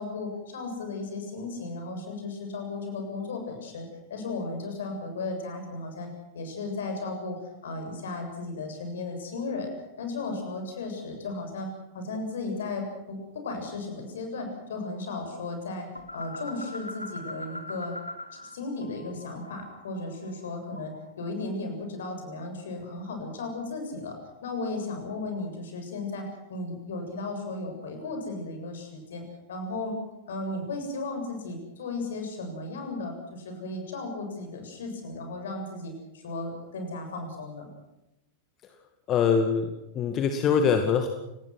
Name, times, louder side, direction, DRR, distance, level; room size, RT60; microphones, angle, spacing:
voice 1, 0.0-9.7 10.0-11.7 11.9-17.9 18.3-30.0 30.3-37.7, left 3 dB, 60° left, 5 dB, 7.4 m, -35 dB
sound 1, 15.9-18.5 18.8-21.1, left 1 dB, 85° left, 1.8 m, -41 dB
voice 2, 39.1-39.7 39.9-41.1, left 6 dB, 30° left, 6 dB, 2.2 m, -23 dB
29.5 x 19.5 x 6.2 m, 0.91 s
figure-of-eight pair, 90°, 0 cm